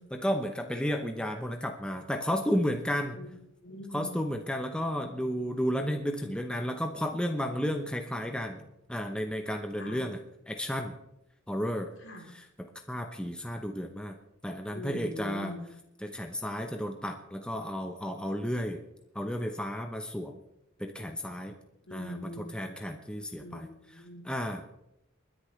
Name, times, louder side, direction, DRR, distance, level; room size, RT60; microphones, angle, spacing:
voice 1, 0.1-3.2 3.9-10.2 10.5-11.0 11.5-11.9 12.3-12.5 12.9-14.2 14.4-15.5 16.0-18.8 19.1-20.3 20.8-21.6 21.9-23.7 24.2-24.7, equal, 5° left, 4 dB, 0.8 m, -32 dB
voice 2, 3.6-4.1 9.8-10.0 12.0-12.3 14.7-15.6 21.8-22.5 23.4-24.2, left 1 dB, 65° left, 0 dB, 3.5 m, -42 dB
29.5 x 10.0 x 3.2 m, 0.86 s
head